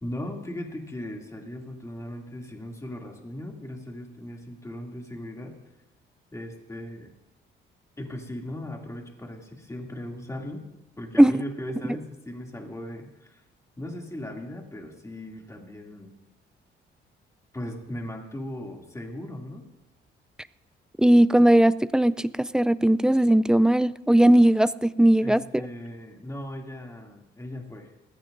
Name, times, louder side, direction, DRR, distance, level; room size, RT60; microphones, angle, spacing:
voice 1, 0.0-5.6 6.3-7.1 8.0-10.6 11.0-13.4 13.8-16.1 17.5-19.7 25.2-27.9, left 1 dB, 15° left, 1 dB, 2.6 m, -38 dB
voice 2, 21.0-25.4, right 1 dB, 5° right, 17 dB, 0.4 m, -18 dB
20.5 x 15.0 x 2.6 m, 0.94 s
cardioid pair, 90°, 20 cm